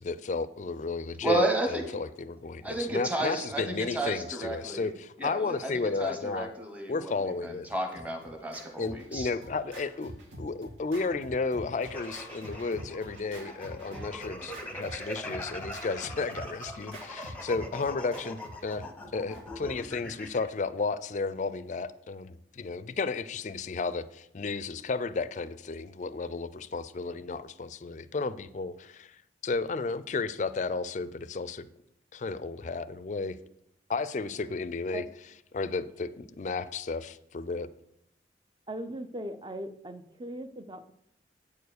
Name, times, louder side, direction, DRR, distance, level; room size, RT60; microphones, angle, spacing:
voice 1, 0.0-6.5 6.9-7.7 8.8-18.9 19.1-29.2 29.4-31.7 32.1-33.4 33.9-35.1 35.5-37.7, left 4 dB, 40° left, 15 dB, 0.4 m, -33 dB
voice 2, 1.2-1.9 2.6-4.9 5.2-9.3, right 2 dB, 10° right, 3 dB, 1.1 m, -32 dB
Scratching (performance technique), 7.6-19.7, equal, 90° right, 2.1 m, -46 dB
sound 1, 11.8-20.5, left 1 dB, 5° left, 0.7 m, -41 dB
voice 3, 38.7-40.9, right 1 dB, 25° right, 10 dB, 0.5 m, -39 dB
8.5 x 4.6 x 6.5 m, 0.79 s
head